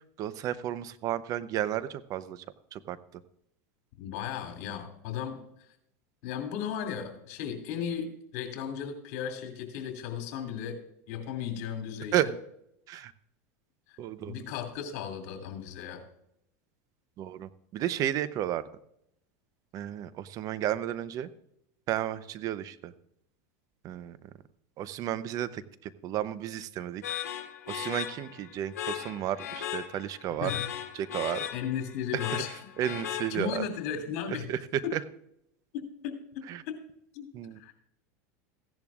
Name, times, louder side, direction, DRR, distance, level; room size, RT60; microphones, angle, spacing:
voice 1, 0.2-2.4 2.7-3.0 12.1-12.3 12.9-13.1 14.0-14.4 17.2-18.6 19.7-21.3 21.9-22.9 23.8-24.2 24.8-25.6 26.0-27.0 27.7-30.5 30.9-31.5 32.3-32.4 32.8-33.6 34.3-35.0 36.5-36.6 37.3-37.6, right 11 dB, 45° right, 15 dB, 0.7 m, -32 dB
voice 2, 4.0-5.4 6.2-8.1 8.3-10.8 11.1-12.3 13.9-14.0 14.3-16.0 30.4-30.6 31.5-32.5 33.3-34.5 34.8-35.0 35.7-36.8 37.1-37.3 37.5-37.7, left 8 dB, 65° left, 4 dB, 2.6 m, -35 dB
sound 1, 27.0-33.7, left 10 dB, 90° left, 1.3 m, -37 dB
15.5 x 11.0 x 2.4 m, 0.76 s
supercardioid pair, 110°, 8 cm